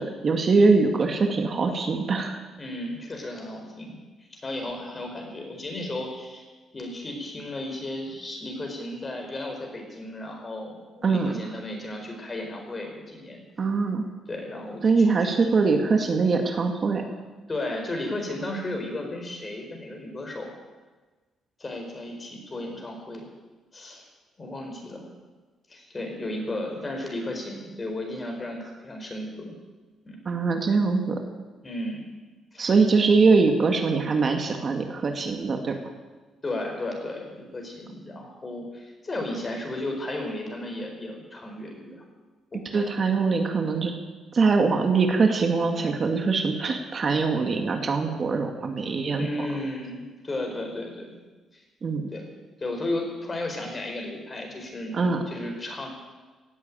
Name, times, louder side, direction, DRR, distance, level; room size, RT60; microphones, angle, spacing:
voice 1, 0.0-2.4 11.0-11.4 13.6-14.1 14.8-17.0 30.3-31.2 32.6-35.8 42.7-43.9 44.3-49.3 51.8-52.1 54.9-55.2, right 4 dB, 45° right, 4 dB, 1.9 m, -22 dB
voice 2, 2.6-4.0 4.3-6.5 6.7-13.4 14.3-15.6 17.5-20.5 21.6-23.3 23.7-24.0 24.4-25.1 25.7-29.5 30.0-30.2 31.6-32.0 32.5-32.7 36.4-42.0 42.5-43.1 49.2-51.2 51.5-51.6 52.1-52.3 52.6-55.9, left 1 dB, 30° left, 2 dB, 4.9 m, -34 dB
17.0 x 8.5 x 8.9 m, 1.3 s
cardioid pair, 90°, 0 cm